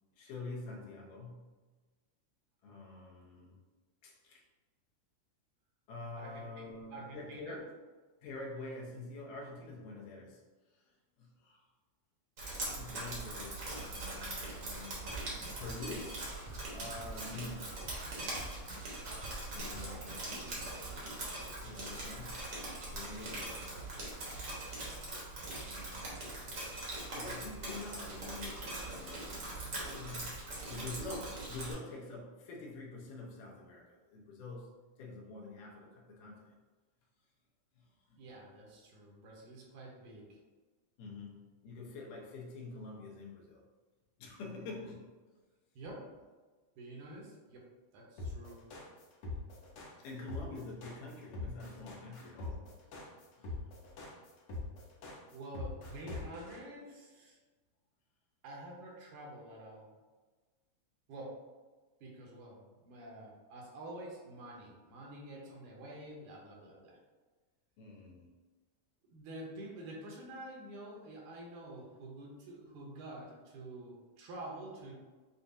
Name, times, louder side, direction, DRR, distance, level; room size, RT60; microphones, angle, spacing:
voice 1, 0.1-1.6 2.6-3.6 4.0-4.4 5.9-7.8 8.2-11.7 12.8-16.3 16.7-17.9 19.5-20.3 21.6-22.5 22.9-24.3 25.7-26.7 27.1-36.6 37.8-38.2 41.0-43.6 44.2-45.1 50.0-52.7 53.4-53.6 67.8-68.3, left 3 dB, 90° left, -2 dB, 2.4 m, -47 dB
voice 2, 6.2-6.7 6.9-7.6 19.7-21.1 38.2-40.4 45.8-46.1 46.8-48.6 55.3-57.4 58.4-59.9 61.1-61.4 62.0-67.0 69.0-74.9, right 1 dB, 80° right, -2 dB, 2.4 m, -48 dB
Drip, 12.4-31.7, right 2 dB, 60° right, 1.2 m, -42 dB
sound 1, 15.1-20.4, right 1 dB, 45° right, 0.8 m, -49 dB
sound 2, 48.2-56.6, left 3 dB, 70° left, 1.4 m, -42 dB
7.0 x 2.4 x 2.6 m, 1.3 s
omnidirectional pair, 3.7 m